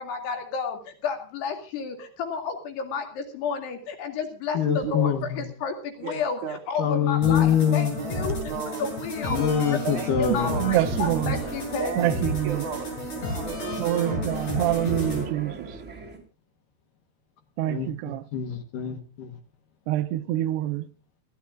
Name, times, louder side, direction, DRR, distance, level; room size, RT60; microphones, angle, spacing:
voice 1, 0.0-11.9, left 5 dB, 85° left, 4.5 m, -32 dB
voice 2, 4.5-5.5 6.8-8.0 9.3-10.7 17.7-19.4, left 8 dB, 65° left, 2.5 m, -25 dB
voice 3, 6.0-6.6 8.0-8.9 9.8-11.0 11.8-14.3, right 7 dB, 60° right, 2.3 m, -36 dB
sound 1, 7.2-15.2, equal, 45° left, 8.7 m, -32 dB
voice 4, 10.3-11.4 12.0-12.6 13.8-15.8 17.6-18.2 19.9-20.8, right 13 dB, 85° right, 3.0 m, -26 dB
sound 2, 10.4-16.2, right 3 dB, 20° right, 3.8 m, -40 dB
29.0 x 13.0 x 2.4 m
omnidirectional pair, 4.7 m